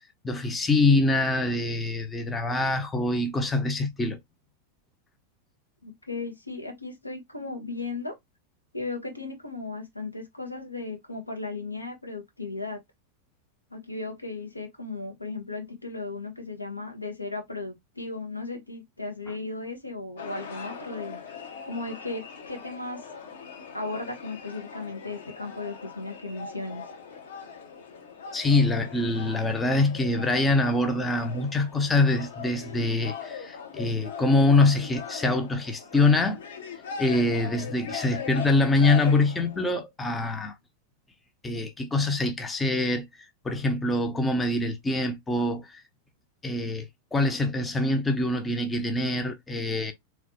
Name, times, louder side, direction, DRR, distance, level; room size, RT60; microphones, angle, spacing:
voice 1, 0.2-4.2 28.3-36.4 37.0-40.5 41.4-43.0 43.4-45.8 46.4-49.9, left 2 dB, 10° left, 0.8 m, -24 dB
voice 2, 5.8-8.1 8.7-12.8 13.7-21.2 21.6-23.1 23.7-26.8, left 3 dB, 85° left, 1.5 m, -36 dB
sound 1, 20.2-39.7, left 6 dB, 60° left, 1.3 m, -41 dB
4.0 x 3.1 x 3.0 m
figure-of-eight pair, 90°, 0 cm